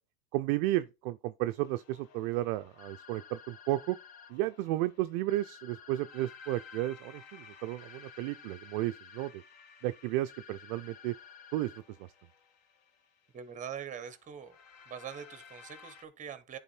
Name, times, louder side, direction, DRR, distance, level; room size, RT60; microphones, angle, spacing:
voice 1, 0.3-4.0 4.3-9.4 9.8-11.1 11.5-11.7, right 16 dB, 40° right, 0.5 m, -33 dB
sound 1, 1.6-16.0, left 6 dB, 35° left, 1.5 m, -57 dB
sound 2, 2.8-4.3 5.3-6.8 7.8-9.3 10.3-11.8, left 7 dB, 20° left, 0.7 m, -53 dB
voice 2, 13.3-14.6 14.9-16.6, right 8 dB, 15° right, 1.1 m, -43 dB
9.8 x 4.1 x 4.4 m
hypercardioid pair, 125°, 42 cm